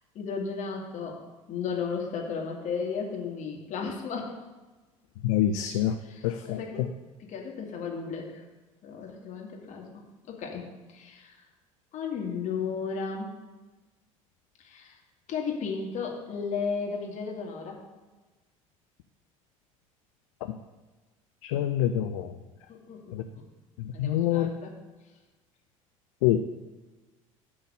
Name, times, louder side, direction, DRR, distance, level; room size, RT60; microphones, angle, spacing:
voice 1, 0.1-1.2 1.5-4.3 6.0-6.8 7.3-8.4 8.8-11.4 11.9-13.3 14.6-14.9 15.3-17.8 22.7-23.4 23.9-24.8, left 5 dB, 45° left, 0 dB, 2.2 m, -34 dB
voice 2, 5.2-5.9 6.2-6.6 21.4-22.3 23.1-23.2 24.0-24.5 26.2-26.4, left 11 dB, 65° left, 7 dB, 0.5 m, -25 dB
12.0 x 3.9 x 6.8 m, 1.2 s
figure-of-eight pair, 65°, 18 cm